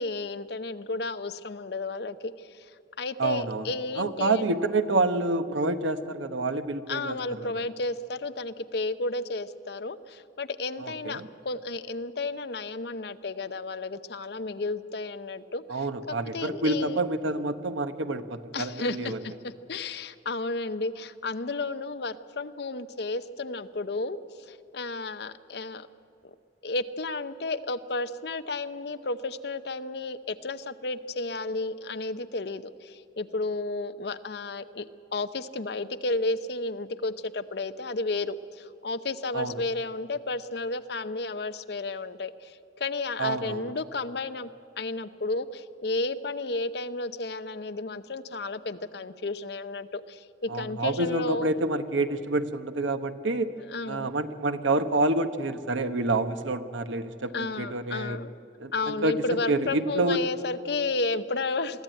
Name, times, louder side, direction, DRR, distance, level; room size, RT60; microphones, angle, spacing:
voice 1, 0.0-2.5 3.0-4.5 6.9-17.0 18.5-24.2 24.5-25.9 26.6-44.5 44.8-51.5 53.7-54.1 57.3-58.3 58.7-61.8, left 3 dB, 60° left, 12 dB, 0.7 m, -32 dB
voice 2, 3.2-3.7 4.0-7.6 10.8-11.3 15.7-19.2 39.3-39.6 43.2-43.7 50.5-53.5 53.9-58.2 58.6-60.2, right 2 dB, 85° right, 10 dB, 1.0 m, -28 dB
23.0 x 14.0 x 9.1 m, 2.8 s
head